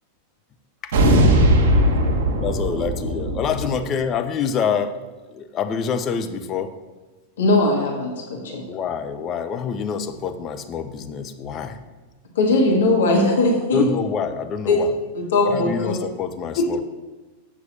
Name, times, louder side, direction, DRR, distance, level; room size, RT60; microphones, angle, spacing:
voice 1, 0.9-3.4, equal, 55° right, 2 dB, 1.5 m, -18 dB
voice 2, 2.4-5.0 5.3-6.7 8.7-11.8 13.7-14.9 15.4-16.8, left 6 dB, 30° left, 7 dB, 0.8 m, -26 dB
voice 3, 7.4-8.6 12.4-13.9 14.7-14.8 15.1-15.9 16.6-16.8, left 2 dB, 60° left, -1 dB, 1.8 m, -19 dB
7.9 x 6.1 x 7.0 m, 1.2 s
figure-of-eight pair, 90°, 0 cm